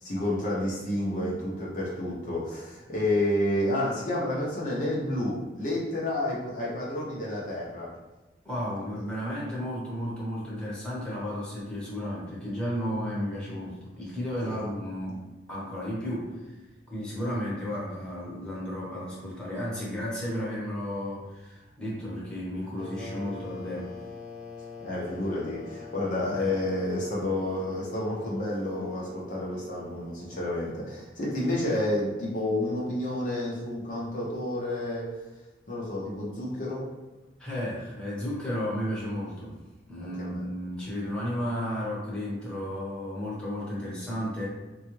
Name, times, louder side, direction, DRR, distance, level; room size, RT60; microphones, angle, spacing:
voice 1, 0.0-7.9 14.4-14.7 24.8-35.1 35.7-36.9 40.0-40.4, left 1 dB, 45° left, -5 dB, 0.6 m, -30 dB
voice 2, 8.4-16.6 16.9-24.0 37.4-39.5 39.9-44.5, equal, 5° left, -7 dB, 0.9 m, -33 dB
sound 1, 22.8-31.2, left 3 dB, 55° right, 0.7 m, -44 dB
3.4 x 2.3 x 3.1 m, 1.2 s
head